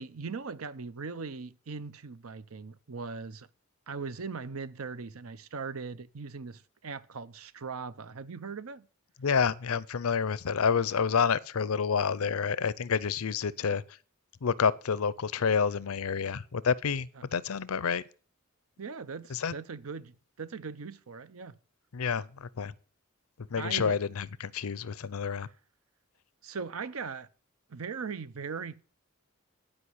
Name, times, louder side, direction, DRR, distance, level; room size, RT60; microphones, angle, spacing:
voice 1, 0.0-3.5 3.9-8.9 18.8-21.6 23.6-24.0 26.4-27.3 27.7-28.8, right 5 dB, 80° right, 0.7 m, -39 dB
voice 2, 9.2-13.8 14.4-18.0 19.3-19.5 21.9-22.7 23.4-25.5, left 6 dB, 85° left, 0.6 m, -29 dB
11.0 x 5.3 x 7.9 m
head